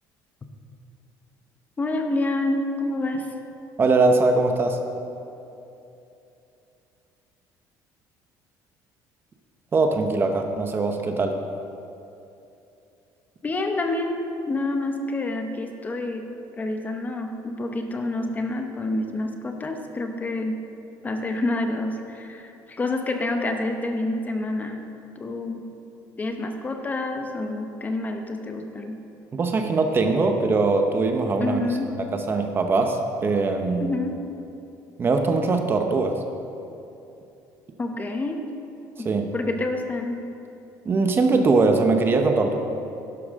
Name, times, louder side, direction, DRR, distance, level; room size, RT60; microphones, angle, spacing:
voice 1, 1.8-3.3 13.4-16.3 16.6-20.6 21.0-24.9 25.2-25.7 26.2-29.0 31.4-32.0 33.8-34.2 37.8-38.4 39.0-40.2, left 2 dB, 20° left, 5 dB, 0.9 m, -28 dB
voice 2, 3.8-4.8 9.7-11.3 29.3-31.6 32.1-33.9 35.0-36.2 39.0-39.3 40.8-42.5, right 3 dB, 30° right, 5 dB, 0.9 m, -21 dB
11.5 x 11.5 x 3.7 m, 2.8 s
cardioid pair, 125°, 7 cm